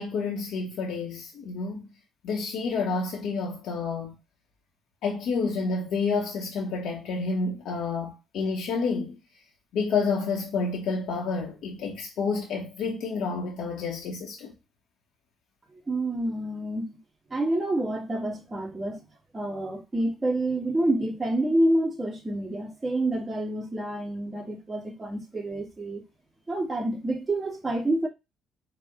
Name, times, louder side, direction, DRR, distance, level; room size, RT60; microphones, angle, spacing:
voice 1, 0.0-1.8 2.2-4.1 5.0-9.2 9.7-14.5, left 4 dB, 85° left, 0.8 m, -29 dB
voice 2, 15.7-17.0 17.3-19.1 19.3-26.0 26.5-28.1, right 1 dB, 20° right, 1.5 m, -28 dB
4.6 x 2.1 x 3.7 m
cardioid pair, 90°, 0 cm